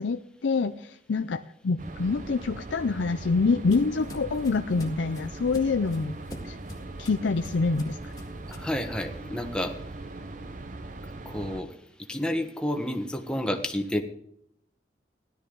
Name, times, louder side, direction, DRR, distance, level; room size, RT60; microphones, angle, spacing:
voice 1, 0.0-6.2 6.4-6.6 7.0-8.1, left 4 dB, 85° left, 9 dB, 0.5 m, -26 dB
sound 1, 1.8-11.6, right 2 dB, 45° right, 0.8 m, -40 dB
sound 2, 2.7-8.8, left 1 dB, 20° left, 1.9 m, -45 dB
voice 2, 8.5-9.7 11.2-11.7 12.1-14.0, left 1 dB, 5° left, 3 dB, 1.2 m, -30 dB
17.0 x 12.0 x 3.9 m, 0.74 s
head